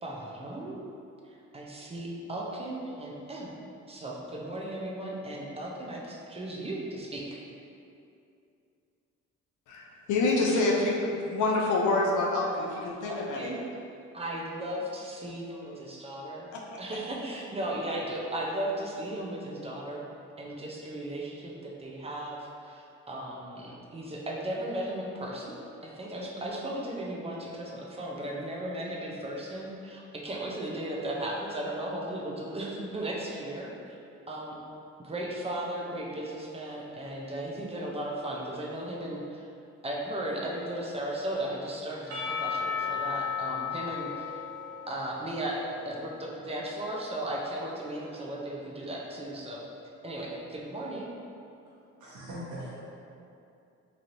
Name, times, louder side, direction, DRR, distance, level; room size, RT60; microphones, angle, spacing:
voice 1, 0.0-0.8 1.2-3.5 3.9-7.4 13.1-13.6 14.1-16.5 16.8-20.1 20.4-25.6 25.8-34.0 34.3-34.6 35.0-39.5 39.8-44.4 44.9-45.6 45.8-49.6 50.0-51.1, right 1 dB, 20° right, -2 dB, 0.5 m, -36 dB
voice 2, 9.7-13.5, left 2 dB, 80° left, -2 dB, 0.5 m, -27 dB
Percussion / Church bell, 42.1-46.1, left 6 dB, 60° right, 0.7 m, -35 dB
voice 3, 52.0-52.8, equal, 75° right, -9 dB, 1.0 m, -40 dB
3.1 x 2.6 x 2.6 m, 2.6 s
cardioid pair, 90°, 30 cm